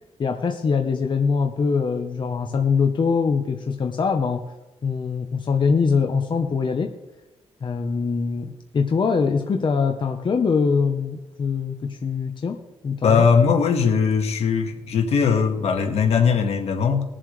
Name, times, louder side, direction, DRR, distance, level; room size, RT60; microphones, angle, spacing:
voice 1, 0.2-4.4 4.8-6.9 7.6-12.6 12.8-13.3, left 5 dB, 45° left, 4 dB, 1.0 m, -23 dB
voice 2, 13.0-17.0, left 6 dB, 75° left, 4 dB, 1.8 m, -19 dB
21.0 x 7.5 x 3.3 m, 1.0 s
cardioid pair, 90°, 11 cm